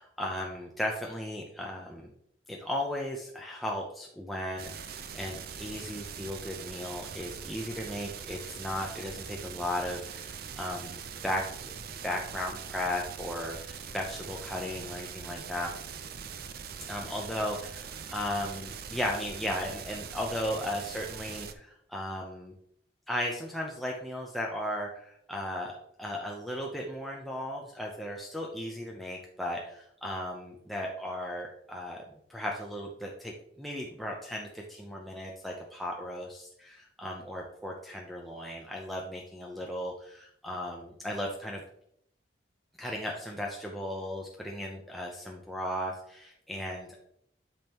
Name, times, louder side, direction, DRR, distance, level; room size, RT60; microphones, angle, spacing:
voice 1, 0.0-2.1 2.5-11.0 11.2-11.7 12.0-15.7 16.9-22.5 23.1-32.0 32.3-41.6 42.8-47.0, left 1 dB, ahead, -1 dB, 0.7 m, -36 dB
sound 1, 4.6-21.5, right 6 dB, 50° right, 0.5 m, -42 dB
8.8 x 5.4 x 3.0 m, 0.70 s
head